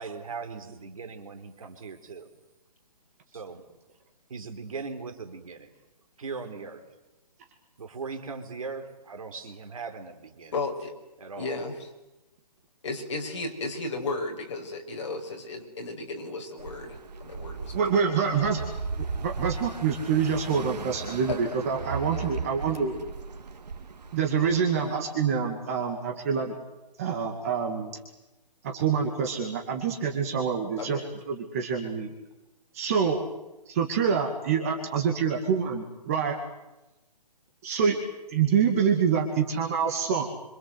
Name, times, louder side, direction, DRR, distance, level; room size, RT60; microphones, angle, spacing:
voice 1, 0.0-2.3 3.3-3.6 4.3-5.7 6.2-6.8 7.8-10.5 11.2-11.5, right 4 dB, 55° right, 7 dB, 4.4 m, -39 dB
voice 2, 10.5-10.9 11.3-11.7 12.8-18.2 21.3-21.4 22.1-22.3 24.8-24.9 30.8-31.0, left 3 dB, 45° left, 2 dB, 6.3 m, -34 dB
sound 1, 16.6-25.0, right 5 dB, 75° right, 2.9 m, -37 dB
voice 3, 17.7-18.6 19.0-22.9 24.1-26.5 27.0-28.0 28.6-31.0 31.3-32.1 32.7-33.3 33.7-36.4 37.6-38.0 38.3-40.2, right 6 dB, 20° right, 2 dB, 2.3 m, -26 dB
28.0 x 26.5 x 8.1 m, 1.0 s
hypercardioid pair, 175°, 21 cm